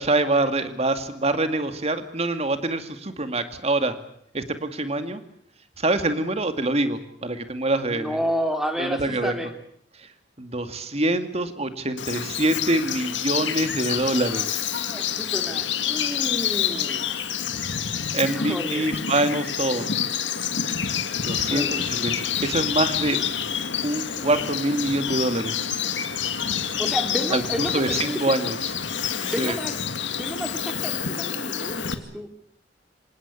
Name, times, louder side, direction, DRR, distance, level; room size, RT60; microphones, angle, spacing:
voice 1, 0.0-3.9 4.3-5.2 5.8-8.2 8.8-9.3 10.4-14.6 18.1-19.9 21.2-23.2 23.8-25.7 27.3-27.4 27.7-28.6 29.4-29.5, right 2 dB, 35° right, 9 dB, 2.3 m, -25 dB
voice 2, 7.8-9.5 13.9-14.5 14.7-17.2 18.2-18.9 21.3-21.8 26.8-28.5 29.1-29.8 30.1-32.3, equal, ahead, 5 dB, 3.3 m, -31 dB
Bird vocalization bird call bird song, 12.0-31.9, left 8 dB, 80° left, 2.1 m, -28 dB
26.5 x 19.0 x 8.5 m, 0.68 s
head